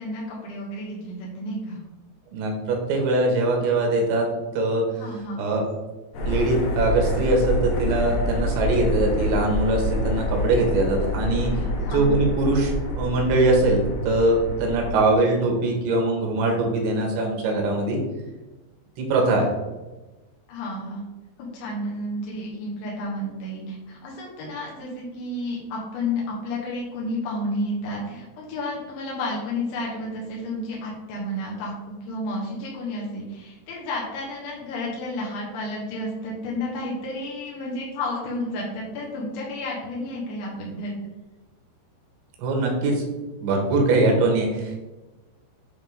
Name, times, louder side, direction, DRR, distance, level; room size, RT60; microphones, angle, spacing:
voice 1, 0.0-1.8 5.0-5.4 11.5-12.1 19.2-19.4 20.5-21.0 21.4-40.9, left 1 dB, 85° left, -4 dB, 3.7 m, -31 dB
voice 2, 2.3-4.3 4.6-4.8 5.4-5.7 6.2-18.0 19.0-19.4 42.4-43.0 43.4-44.8, right 2 dB, 80° right, 1 dB, 3.5 m, -22 dB
sound 1, 6.1-14.9, left 1 dB, 65° left, 2.2 m, -27 dB
9.8 x 3.8 x 3.6 m, 1.1 s
omnidirectional pair, 5.2 m